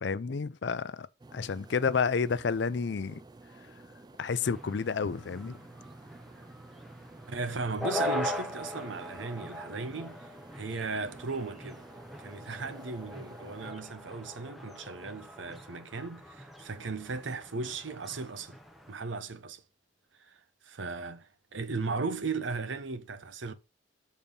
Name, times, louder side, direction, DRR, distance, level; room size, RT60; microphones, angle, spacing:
voice 1, 0.0-1.1 1.3-3.2 4.2-5.6, left 5 dB, 65° left, 0.5 m, -30 dB
sound 1, 1.2-13.7, right 2 dB, 20° right, 0.4 m, -52 dB
sound 2, 4.4-18.9, left 1 dB, ahead, 0.8 m, -41 dB
voice 2, 7.3-11.8 12.2-18.6 18.9-19.6 20.2-20.4 20.6-23.5, right 4 dB, 85° right, 0.8 m, -36 dB
7.1 x 4.2 x 5.3 m
head